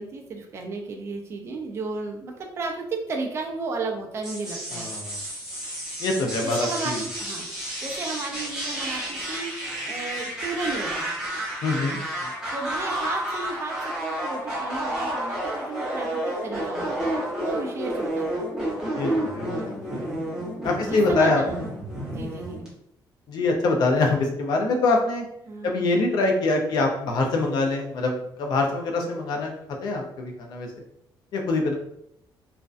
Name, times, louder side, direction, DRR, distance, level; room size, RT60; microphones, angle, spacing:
voice 1, 0.0-4.9 6.4-7.5 7.8-9.6 9.9-11.1 12.5-17.0 17.4-18.5 20.6-21.5 21.9-22.7 25.4-25.8, right 3 dB, 35° right, 1 dB, 0.4 m, -33 dB
sound 1, 4.2-22.7, right 1 dB, 10° right, 0.7 m, -31 dB
voice 2, 4.7-5.2 6.0-7.0 11.6-12.3 19.0-20.0 20.6-21.4 22.0-22.2 23.3-25.2 25.6-29.5 29.8-30.7 31.3-31.7, left 3 dB, 60° left, 2 dB, 0.5 m, -24 dB
2.5 x 2.1 x 2.4 m, 0.77 s
cardioid pair, 170°, 8 cm